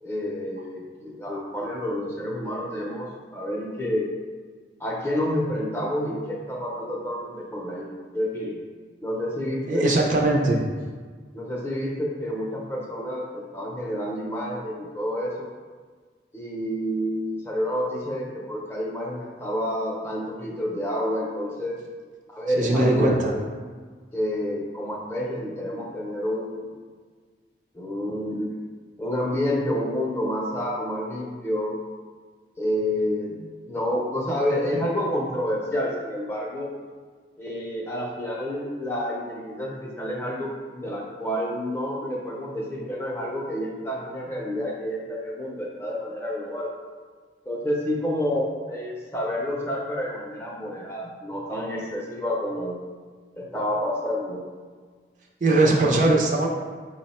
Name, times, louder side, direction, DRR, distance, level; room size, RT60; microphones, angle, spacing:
voice 1, 0.0-4.1 4.8-8.6 9.0-10.0 11.3-15.5 16.3-21.8 22.3-23.5 24.1-26.7 27.7-28.5 29.0-31.7 32.6-36.7 37.4-46.7 47.5-52.8 53.3-54.4, equal, 15° left, -3 dB, 0.6 m, -29 dB
voice 2, 9.7-10.6 22.6-23.3 55.4-56.5, right 2 dB, 45° right, -1 dB, 0.5 m, -20 dB
4.7 x 2.1 x 4.1 m, 1.5 s
head